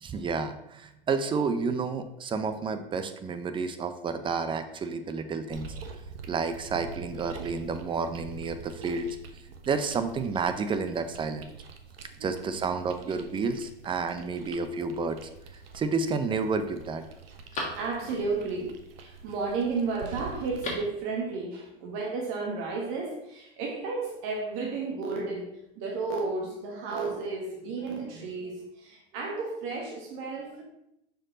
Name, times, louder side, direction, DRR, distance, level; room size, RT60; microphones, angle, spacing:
voice 1, 0.0-5.7 6.3-9.1 9.7-11.4 12.2-15.2 15.7-17.0, right 4 dB, 15° right, 9 dB, 0.5 m, -30 dB
sound 1, 5.5-20.8, right 5 dB, 80° right, 0.9 m, -46 dB
voice 2, 12.9-13.2 14.1-14.7 17.5-30.6, right 4 dB, 45° right, 0 dB, 1.2 m, -33 dB
Telephone, 15.2-15.8 16.4-16.5 16.8-18.4 20.4-21.0 21.3-21.4, left 2 dB, 25° left, 2.1 m, -39 dB
6.2 x 4.6 x 3.7 m, 0.83 s
hypercardioid pair, 110°, 29 cm